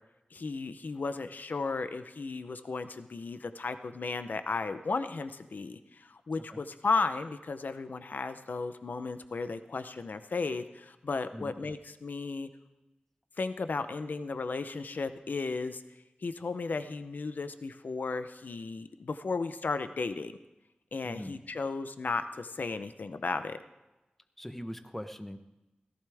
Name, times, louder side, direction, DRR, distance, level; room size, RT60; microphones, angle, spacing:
voice 1, 0.3-12.5 13.4-15.8 16.2-20.3 20.9-23.6, left 4 dB, 75° left, 10 dB, 0.7 m, -34 dB
voice 2, 24.4-25.4, equal, 10° left, 8 dB, 0.9 m, -41 dB
17.0 x 15.0 x 3.5 m, 0.99 s
wide cardioid pair, 95°, 3 cm